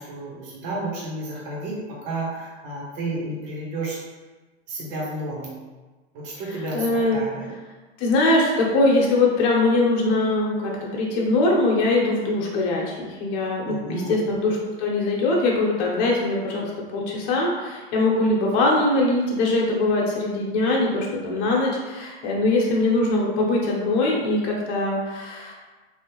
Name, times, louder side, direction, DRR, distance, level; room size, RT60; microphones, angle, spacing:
voice 1, 0.0-1.8 2.1-4.0 4.7-5.5 6.2-6.8 7.1-7.5 13.6-14.1, right 2 dB, 60° right, -5 dB, 1.5 m, -31 dB
voice 2, 6.4-7.2 7.5-7.6 8.0-25.5, left 2 dB, 55° left, -2 dB, 1.1 m, -22 dB
3.5 x 2.8 x 3.0 m, 1.3 s
supercardioid pair, 120°, 32 cm